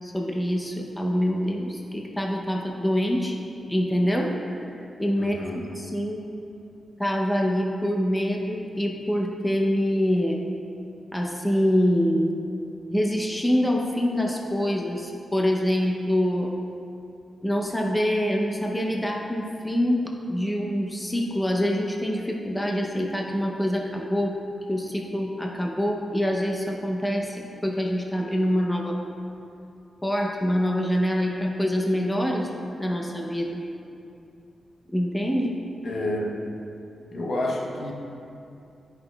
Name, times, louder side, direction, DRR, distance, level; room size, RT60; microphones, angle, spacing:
voice 1, 0.0-3.4 3.7-4.7 5.0-5.4 5.7-6.2 7.0-10.4 11.1-12.4 12.9-16.5 17.4-20.0 20.3-24.3 24.7-29.0 30.0-32.5 32.8-33.6 34.9-35.5, equal, 10° left, 0 dB, 0.6 m, -25 dB
voice 2, 5.2-5.6 35.8-36.4 37.1-37.9, left 1 dB, 60° left, 0 dB, 0.8 m, -29 dB
10.0 x 5.7 x 2.3 m, 2.6 s
cardioid pair, 80°, 0 cm